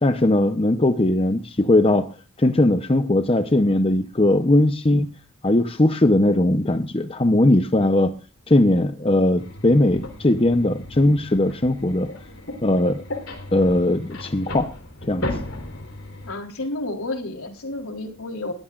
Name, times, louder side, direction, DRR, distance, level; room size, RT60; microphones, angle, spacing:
voice 1, 0.0-5.1 5.4-8.2 8.5-12.1 12.6-13.0 13.5-14.7 15.0-15.4, left 1 dB, 25° left, 0.7 m, -19 dB
sound 1, 9.4-16.3, left 1 dB, 60° left, 3.9 m, -35 dB
voice 2, 16.2-18.5, left 2 dB, 75° left, 3.6 m, -30 dB
22.0 x 14.5 x 2.5 m
head